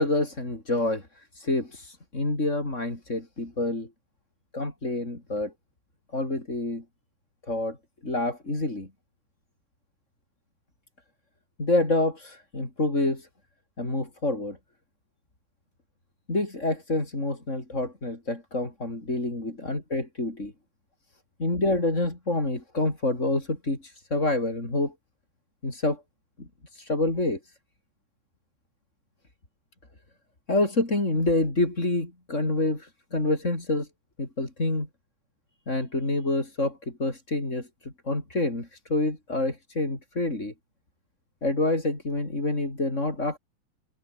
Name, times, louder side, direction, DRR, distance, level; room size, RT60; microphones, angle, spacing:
voice 1, 0.0-3.9 4.5-5.5 6.1-6.8 7.5-7.8 8.0-8.9 11.6-13.3 13.8-14.6 16.3-20.5 21.4-24.9 25.6-26.0 26.4-27.5 30.5-33.9 34.2-34.9 35.7-40.5 41.4-43.4, left 2 dB, 25° left, 5.5 m, -27 dB
omnidirectional pair, 3.3 m